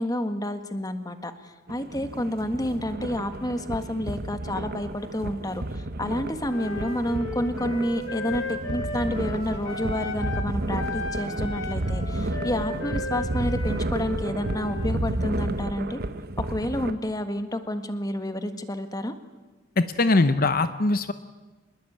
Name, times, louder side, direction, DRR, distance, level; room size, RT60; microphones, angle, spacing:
voice 1, 0.0-16.0 16.4-19.1, left 1 dB, 20° left, 8 dB, 1.6 m, -30 dB
sound 1, 1.7-16.9, right 1 dB, 50° right, 1.1 m, -31 dB
Wind instrument woodwind instrument, 6.4-10.5 10.7-14.9, left 2 dB, 80° left, 4.0 m, -35 dB
voice 2, 19.8-21.1, left 2 dB, 45° left, 11 dB, 0.8 m, -21 dB
25.5 x 21.0 x 8.8 m, 1.2 s
head